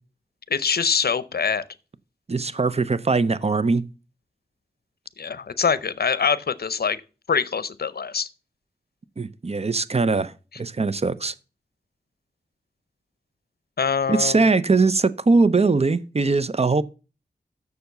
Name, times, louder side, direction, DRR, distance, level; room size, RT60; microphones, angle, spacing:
voice 1, 0.5-1.6 5.2-7.0 7.3-8.3 13.8-14.5, left 6 dB, 65° left, 0.7 m, -24 dB
voice 2, 2.3-3.8 9.2-10.3 10.6-11.3 14.1-16.8, right 3 dB, 35° right, 0.6 m, -21 dB
7.0 x 6.7 x 6.7 m
cardioid pair, 50°, 17 cm